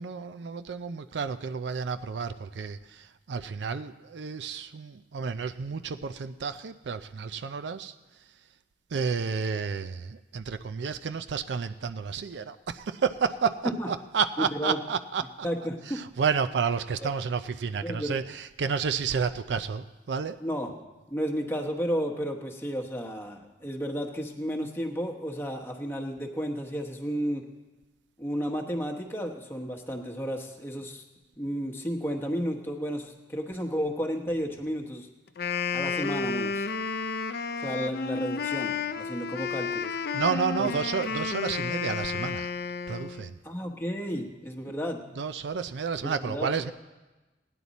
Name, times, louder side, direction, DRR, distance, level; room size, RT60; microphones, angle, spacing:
voice 1, 0.0-7.9 8.9-15.5 15.9-20.4 40.1-42.5 42.9-43.4 45.2-46.7, right 6 dB, 80° right, 10 dB, 0.4 m, -31 dB
voice 2, 14.4-14.8 15.4-16.0 17.8-18.2 20.4-20.7 21.1-27.4 28.2-31.0 31.4-35.1 35.7-36.7 37.6-39.9 40.6-40.7 43.4-45.0 46.0-46.5, equal, 15° left, 1 dB, 1.0 m, -32 dB
Wind instrument woodwind instrument, 35.3-43.3, left 5 dB, 60° left, 0.5 m, -31 dB
17.0 x 10.0 x 4.1 m, 1.1 s
head